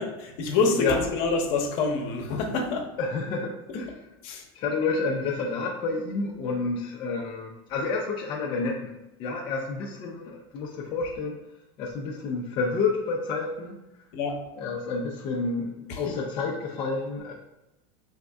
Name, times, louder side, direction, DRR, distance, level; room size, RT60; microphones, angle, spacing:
voice 1, 0.0-2.9 4.2-4.4 14.1-14.4 16.1-16.2, left 4 dB, 50° left, 2 dB, 0.8 m, -26 dB
voice 2, 3.0-4.0 4.5-8.9 9.2-11.4 11.8-13.8 14.6-17.3, left 4 dB, 35° left, -2 dB, 0.4 m, -29 dB
5.1 x 3.5 x 2.3 m, 0.97 s
supercardioid pair, 160°, 15 cm